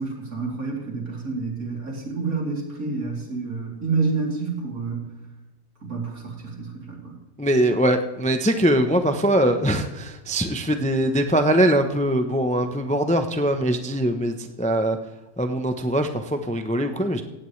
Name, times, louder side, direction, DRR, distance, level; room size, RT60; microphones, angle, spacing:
voice 1, 0.0-5.1 5.8-7.2, right 4 dB, 75° right, -2 dB, 3.8 m, -28 dB
voice 2, 7.4-15.0 15.4-17.2, right 1 dB, 10° left, 7 dB, 0.5 m, -22 dB
17.0 x 16.5 x 3.3 m, 1.0 s
omnidirectional pair, 1.5 m